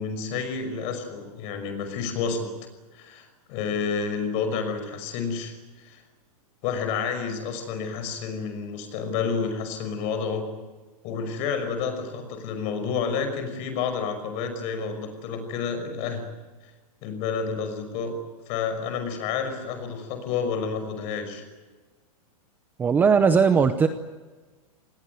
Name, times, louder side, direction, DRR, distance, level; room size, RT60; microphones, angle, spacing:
voice 1, 0.0-2.5 2.9-6.0 6.6-10.5 11.0-16.3 17.0-18.2 18.5-21.4, left 5 dB, 35° left, 8 dB, 5.8 m, -30 dB
voice 2, 22.8-23.9, right 6 dB, 10° right, 9 dB, 0.7 m, -18 dB
27.5 x 20.0 x 9.3 m, 1.3 s
supercardioid pair, 170°, 19 cm